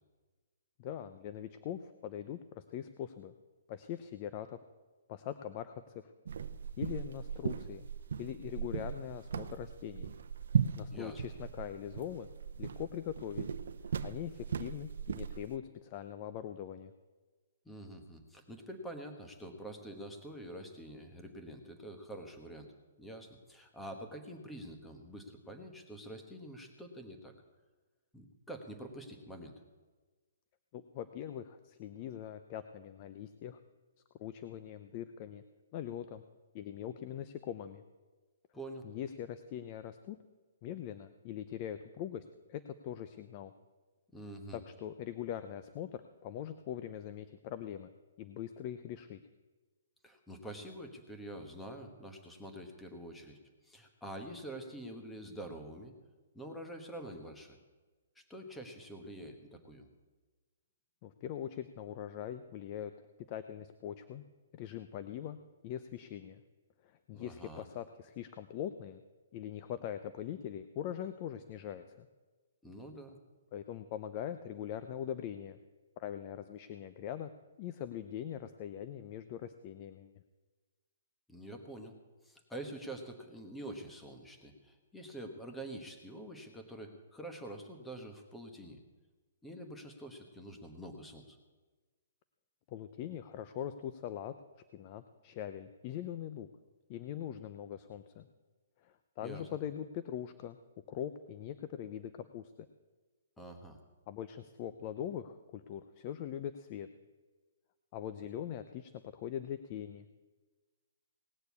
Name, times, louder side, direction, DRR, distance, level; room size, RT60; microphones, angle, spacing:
voice 1, 0.8-3.3 3.7-4.6 5.1-6.1 6.8-7.9 8.2-10.1 10.8-12.3 12.6-13.5 14.0-16.9 30.7-33.6 34.2-35.4 35.7-36.2 36.5-37.8 38.8-40.2 40.6-43.5 44.5-47.9 48.2-49.2 61.0-62.9 63.3-64.2 64.5-66.4 66.8-69.0 69.3-72.1 73.5-75.6 76.0-77.3 77.6-80.1 92.7-94.3 94.7-96.5 96.9-98.3 98.8-100.6 100.9-102.5 104.1-106.9 107.9-110.1, left 10 dB, 30° left, 11 dB, 0.5 m, -42 dB
sound 1, 6.3-15.6, right 7 dB, 70° right, 0.7 m, -38 dB
voice 2, 10.9-11.2 17.6-22.7 23.0-27.3 28.1-29.6 38.5-38.8 44.1-44.6 50.0-53.4 53.6-55.9 56.3-57.6 58.1-59.9 67.1-67.6 72.6-73.2 81.3-82.0 82.2-88.8 89.4-91.4 99.2-99.5 103.4-103.8, right 1 dB, 5° left, 4 dB, 1.2 m, -46 dB
18.5 x 6.7 x 8.3 m, 1.3 s
hypercardioid pair, 165°, 0 cm